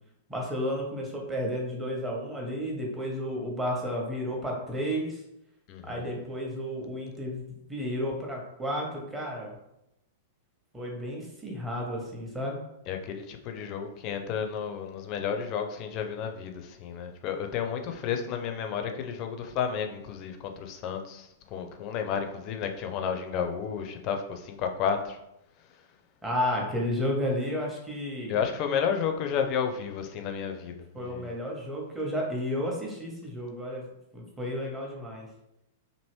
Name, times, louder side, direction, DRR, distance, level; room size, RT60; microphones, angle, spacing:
voice 1, 0.3-5.2 5.8-7.4 7.7-9.6 10.7-12.6 26.2-28.4 30.9-33.8 34.1-35.3, equal, 10° right, -2 dB, 0.9 m, -32 dB
voice 2, 12.9-25.2 28.3-31.3, left 7 dB, 40° left, 6 dB, 0.4 m, -32 dB
3.0 x 2.6 x 3.0 m, 0.85 s
figure-of-eight pair, 100°, 0 cm